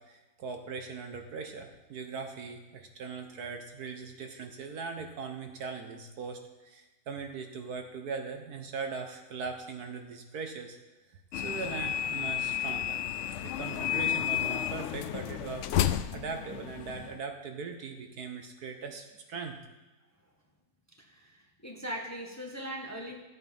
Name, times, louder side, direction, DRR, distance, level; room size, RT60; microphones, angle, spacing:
voice 1, 0.0-10.8 11.1-13.0 13.4-19.6, right 5 dB, 65° right, 5 dB, 1.5 m, -40 dB
sound 1, 11.3-17.2, left 10 dB, 85° left, 0.6 m, -32 dB
voice 2, 21.0-23.1, equal, 10° left, 0 dB, 1.4 m, -40 dB
13.5 x 8.2 x 5.4 m, 1.1 s
omnidirectional pair, 1.8 m